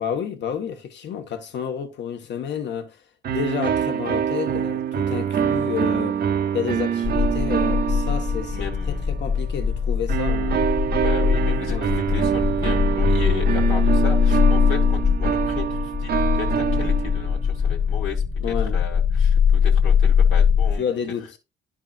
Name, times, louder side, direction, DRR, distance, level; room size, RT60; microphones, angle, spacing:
voice 1, 0.0-3.0 3.3-6.2 6.5-10.6 11.1-11.2 11.5-11.9 18.4-18.8 20.8-21.4, left 8 dB, 65° left, 1.2 m, -30 dB
sound 1, 3.2-9.0 10.1-17.5, right 8 dB, 50° right, 0.6 m, -25 dB
sound 2, 7.0-20.7, left 7 dB, 20° left, 1.0 m, -21 dB
voice 2, 8.5-9.2 10.9-20.8, left 7 dB, 90° left, 1.5 m, -35 dB
10.5 x 4.9 x 2.4 m
cardioid pair, 90°, 20 cm